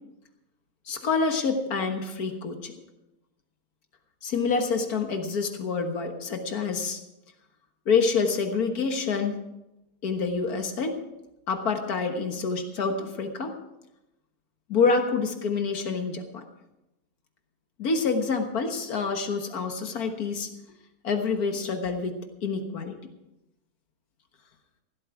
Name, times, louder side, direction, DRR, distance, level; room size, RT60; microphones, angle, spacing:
voice 1, 0.9-2.7 4.2-7.0 7.9-9.4 10.0-11.0 11.5-13.6 14.7-16.4 17.8-20.5 21.0-23.0, left 4 dB, 75° left, 5 dB, 1.9 m, -27 dB
15.5 x 12.5 x 4.8 m, 0.95 s
omnidirectional pair, 1.6 m